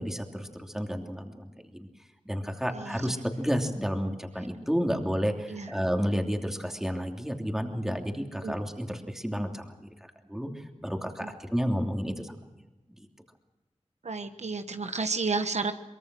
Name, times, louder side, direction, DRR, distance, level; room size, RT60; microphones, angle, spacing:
voice 1, 0.0-1.9 2.2-9.9 10.3-12.3, equal, 5° right, 3 dB, 3.0 m, -31 dB
voice 2, 2.6-3.0 5.5-5.7 8.4-8.5 11.2-11.3 14.0-15.7, right 4 dB, 75° right, 8 dB, 1.3 m, -31 dB
23.5 x 22.5 x 6.3 m, 1.1 s
wide cardioid pair, 80°, 12 cm